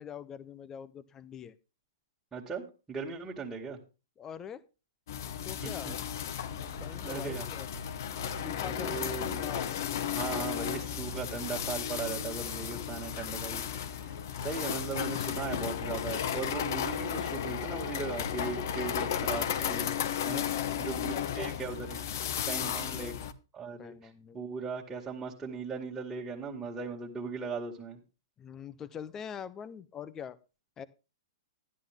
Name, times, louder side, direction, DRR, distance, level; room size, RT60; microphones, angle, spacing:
voice 1, 0.0-1.6 4.2-4.6 5.4-5.9 6.6-7.7 8.4-9.1 9.4-9.8 14.4-14.7 20.4-21.6 22.5-23.3 23.8-24.4 28.4-30.4 30.8-30.9, left 8 dB, 20° left, 16 dB, 1.0 m, -44 dB
voice 2, 2.3-3.8 5.6-5.9 7.0-7.5 8.6-9.4 10.1-20.0 20.2-20.5 20.8-22.0 22.5-23.1 23.5-28.0, right 5 dB, 15° right, -4 dB, 2.2 m, -38 dB
sound 1, 5.1-23.3, left 9 dB, 60° left, 1.0 m, -34 dB
sound 2, 6.5-8.4 10.3-12.2 14.1-16.0 17.9-19.8, right 1 dB, 70° right, 0.9 m, -47 dB
12.5 x 11.0 x 3.7 m, 0.31 s
hypercardioid pair, 115°, 2 cm